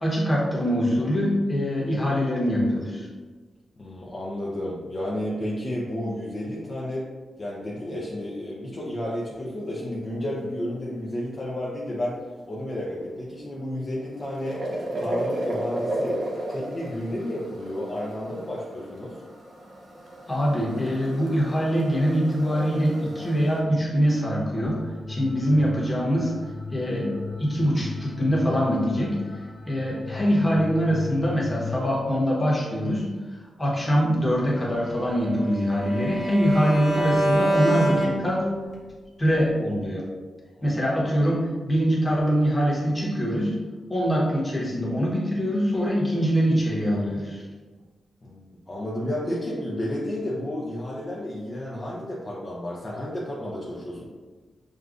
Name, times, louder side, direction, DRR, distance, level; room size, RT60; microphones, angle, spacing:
voice 1, 0.0-3.1 20.3-24.8 25.1-26.3 26.7-27.1 27.4-29.2 29.7-33.1 33.6-38.4 39.2-40.1 40.6-43.5 43.9-47.4, equal, 10° left, -5 dB, 1.1 m, -23 dB
voice 2, 3.8-7.1 7.4-16.2 16.5-19.2 40.6-40.7 48.2-54.0, left 1 dB, 30° left, -6 dB, 0.6 m, -32 dB
sound 1, 13.8-23.6, right 1 dB, 60° right, 0.7 m, -34 dB
sound 2, 24.6-32.0, left 4 dB, 65° left, 1.3 m, -38 dB
Bowed string instrument, 34.6-38.8, right 1 dB, 15° right, 0.7 m, -26 dB
6.4 x 2.3 x 2.5 m, 1.4 s
wide cardioid pair, 125°, 0 cm